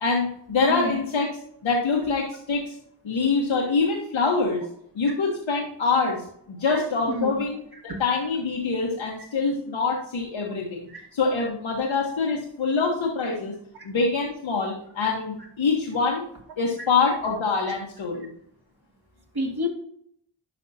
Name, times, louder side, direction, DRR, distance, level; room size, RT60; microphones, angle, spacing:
voice 1, 0.0-1.3 1.6-2.7 3.0-4.6 4.9-7.6 7.8-13.5 13.8-16.2 16.6-18.3, left 4 dB, 90° left, -1 dB, 1.2 m, -25 dB
voice 2, 7.1-7.4 10.9-11.0 16.8-16.9 19.3-19.7, equal, 55° right, 0 dB, 2.5 m, -29 dB
11.0 x 5.3 x 2.7 m, 0.69 s
cardioid pair, 60°, 45 cm